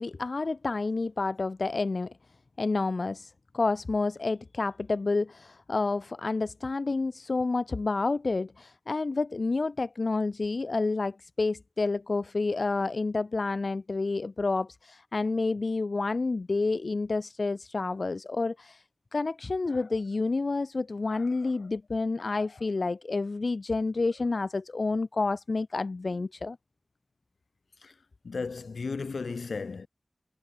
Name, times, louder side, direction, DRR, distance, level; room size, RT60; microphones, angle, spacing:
voice 1, 0.0-2.1 2.6-18.8 19.1-26.6, left 3 dB, 65° left, 0.7 m, -29 dB
voice 2, 21.1-21.5 22.2-22.5 27.8-27.9 28.2-29.9, left 4 dB, 85° left, 1.8 m, -36 dB
cardioid pair, 45°, 0 cm